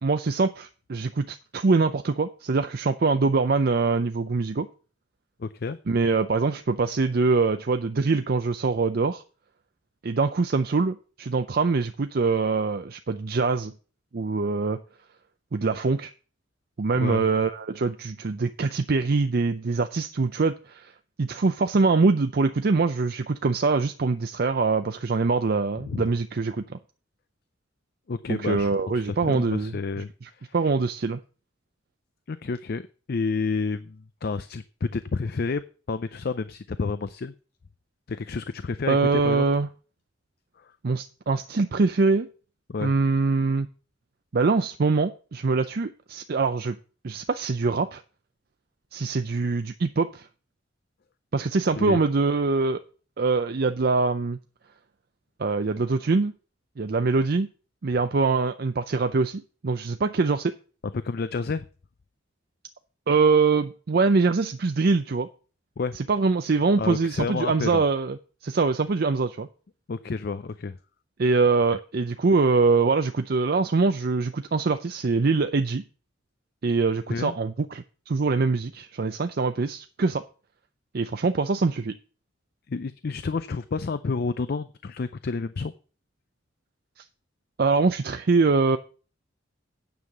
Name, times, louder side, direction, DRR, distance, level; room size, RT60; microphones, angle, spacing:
voice 1, 0.0-4.7 5.9-9.2 10.0-13.7 14.1-14.8 15.5-16.1 16.8-20.9 21.2-26.8 28.3-29.8 30.2-31.2 38.9-39.7 40.8-42.3 42.8-43.7 44.3-46.8 47.0-48.0 48.9-50.3 51.3-52.8 53.2-54.4 55.4-56.3 56.8-57.5 57.8-60.5 63.1-65.3 66.0-68.2 68.4-69.5 71.2-75.8 76.6-80.2 80.9-82.0 87.6-88.8, right 4 dB, 50° right, 8 dB, 0.5 m, -23 dB
voice 2, 5.4-5.8 16.9-17.2 25.8-26.0 28.1-30.1 30.4-30.5 32.3-32.8 33.1-35.6 35.9-37.3 38.1-39.4 40.6-40.7 42.7-42.9 51.8-52.0 60.9-61.7 65.8-66.0 66.8-67.8 69.9-70.8 77.1-77.4 82.7-85.7, left 4 dB, 50° left, 13 dB, 0.5 m, -30 dB
9.5 x 5.6 x 7.2 m, 0.38 s
head